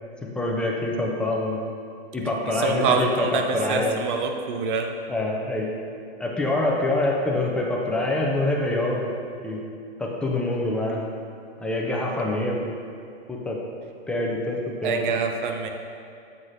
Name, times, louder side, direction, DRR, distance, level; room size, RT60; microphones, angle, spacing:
voice 1, 0.4-1.6 2.1-4.0 5.1-5.7 6.2-9.1 9.4-9.6 10.0-11.1 11.6-12.7 13.3-13.6 14.1-15.2, left 2 dB, 5° left, -2 dB, 0.4 m, -25 dB
voice 2, 2.5-4.9 14.8-15.7, right 5 dB, 50° right, 5 dB, 0.7 m, -25 dB
7.6 x 4.8 x 2.7 m, 2.5 s
hypercardioid pair, 125°, 31 cm